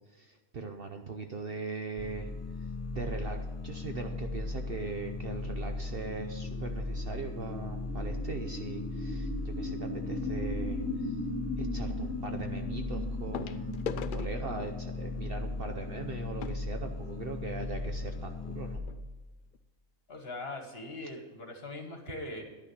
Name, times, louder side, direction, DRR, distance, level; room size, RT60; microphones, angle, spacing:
voice 1, 0.1-2.3 2.9-11.1 11.6-18.8, right 4 dB, 50° right, 5 dB, 0.9 m, -40 dB
sound 1, 2.0-18.8, left 2 dB, 15° left, 0.6 m, -37 dB
sound 2, 5.7-17.2, left 1 dB, 90° right, 4.0 m, -40 dB
sound 3, 13.3-17.7 18.5-18.6 18.8-19.0 19.5-19.6, left 7 dB, 85° left, 0.4 m, -43 dB
voice 2, 20.1-22.4, left 2 dB, 45° left, 3 dB, 1.8 m, -41 dB
11.0 x 6.2 x 8.0 m, 1.3 s
omnidirectional pair, 1.5 m